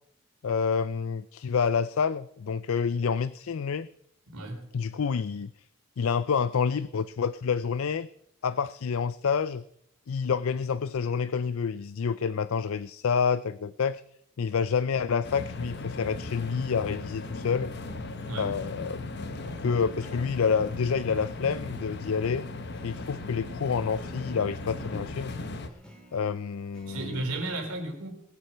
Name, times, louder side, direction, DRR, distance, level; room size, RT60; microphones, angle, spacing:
voice 1, 0.4-3.9 4.7-5.5 6.0-8.1 8.4-9.6 10.1-14.0 14.4-17.7 18.4-19.1 19.6-22.4 22.8-25.3 26.1-27.2, left 6 dB, 70° left, 15 dB, 0.4 m, -28 dB
voice 2, 4.3-4.7 18.3-18.5 26.8-28.2, right 2 dB, 80° right, 2 dB, 4.0 m, -34 dB
sound 1, 15.2-25.7, left 2 dB, 50° left, 1.0 m, -37 dB
sound 2, 18.2-27.8, right 2 dB, 5° left, 2.4 m, -52 dB
21.0 x 8.0 x 5.7 m, 0.72 s
head